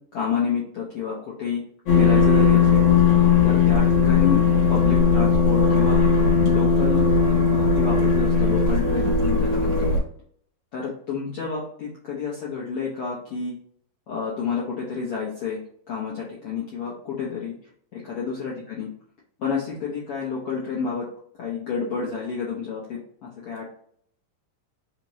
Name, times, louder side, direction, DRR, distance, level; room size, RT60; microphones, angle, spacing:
voice 1, 0.1-1.6 1.9-2.8 3.4-4.4 4.7-6.0 6.5-7.1 7.5-9.9 10.7-13.5 14.1-15.6 15.9-17.5 17.9-18.9 19.4-21.1 21.4-23.6, left 6 dB, 75° left, -5 dB, 1.3 m, -29 dB
sound 1, 1.9-10.0, left 5 dB, 55° left, 2.1 m, -18 dB
5.0 x 2.9 x 3.0 m, 0.62 s
omnidirectional pair, 3.9 m